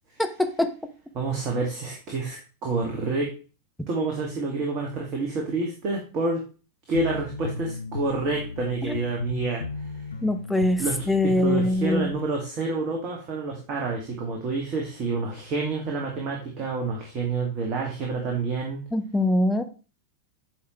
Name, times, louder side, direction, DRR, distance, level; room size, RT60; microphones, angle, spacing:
voice 1, 0.2-0.7 8.8-9.0 10.2-12.1 18.9-19.6, left 1 dB, 5° left, 6 dB, 1.0 m, -23 dB
voice 2, 1.1-3.3 3.9-6.4 6.9-9.9 10.8-18.8, right 3 dB, 35° right, 0 dB, 2.2 m, -28 dB
sound 1, 6.9-12.3, left 3 dB, 70° left, 0.6 m, -35 dB
9.5 x 5.7 x 3.2 m, 0.34 s
figure-of-eight pair, 90°, 0 cm